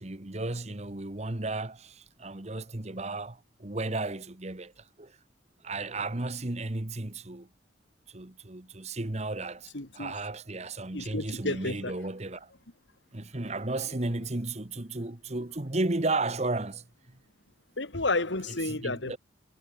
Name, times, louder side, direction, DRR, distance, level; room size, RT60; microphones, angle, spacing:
voice 1, 0.0-5.2 5.6-7.5 8.1-12.5 13.1-17.2 18.7-19.2, right 2 dB, 35° right, 1.3 m, -34 dB
voice 2, 9.7-10.1 10.9-11.9 17.8-19.2, left 2 dB, 75° left, 2.4 m, -31 dB
head